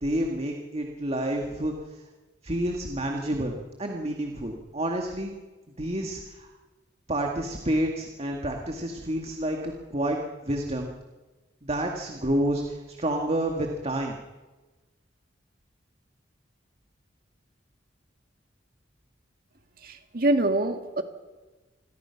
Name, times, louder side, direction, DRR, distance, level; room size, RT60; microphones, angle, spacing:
voice 1, 0.0-2.0 2.4-3.5 3.8-5.3 5.8-6.5 7.1-10.2 10.4-10.9 11.6-14.2, right 1 dB, 35° right, 2 dB, 2.1 m, -29 dB
voice 2, 19.8-21.0, right 1 dB, 50° right, 6 dB, 2.0 m, -25 dB
28.0 x 21.0 x 6.0 m, 1.2 s
head